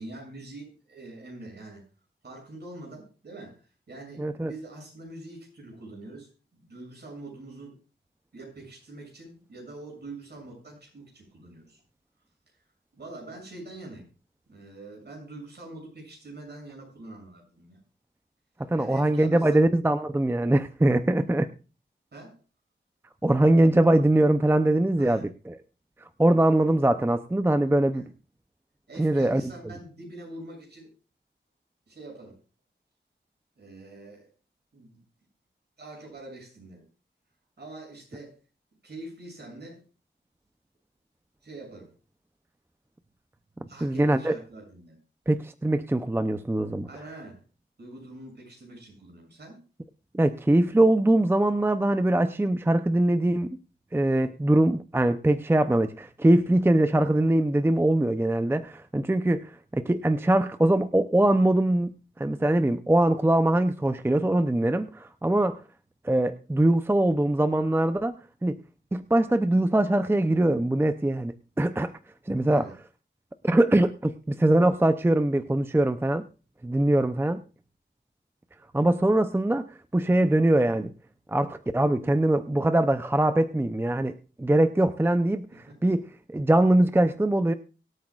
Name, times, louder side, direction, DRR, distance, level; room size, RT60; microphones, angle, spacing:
voice 1, 0.0-1.8 2.2-7.7 8.3-11.8 12.9-14.0 14.5-17.8 18.7-19.7 21.2-21.4 22.1-22.4 25.0-25.3 27.7-28.1 28.9-30.9 31.9-32.3 33.6-34.3 34.7-35.0 35.8-36.8 37.6-38.4 38.8-39.8 41.4-41.9 43.6-45.0 46.9-47.4 47.8-49.6 72.4-72.7, right 2 dB, 55° right, 0 dB, 7.1 m, -44 dB
voice 2, 4.2-4.5 18.7-21.5 23.2-25.6 26.2-28.1 29.0-29.4 43.8-44.4 45.3-46.9 50.1-53.6 53.9-65.6 66.0-68.1 68.4-68.6 68.9-71.9 72.3-72.7 73.4-76.2 76.6-77.4 78.7-80.9 81.3-85.5 85.8-87.5, right 1 dB, 10° right, 10 dB, 0.6 m, -22 dB
24.0 x 8.6 x 2.4 m, 0.34 s
wide cardioid pair, 100°, 20 cm